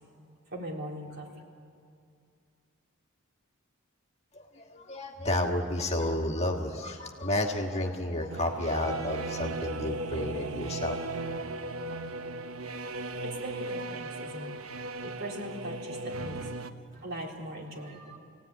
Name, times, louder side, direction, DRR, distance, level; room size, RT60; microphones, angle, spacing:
voice 1, 0.5-1.3 13.2-14.7 15.0-16.7 16.9-18.2, right 1 dB, 50° right, -2 dB, 3.8 m, -40 dB
voice 2, 4.3-11.0, left 1 dB, 30° left, 2 dB, 1.7 m, -31 dB
sound 1, 8.3-16.7, right 2 dB, 90° right, 1.0 m, -36 dB
26.5 x 17.5 x 9.8 m, 2.3 s
head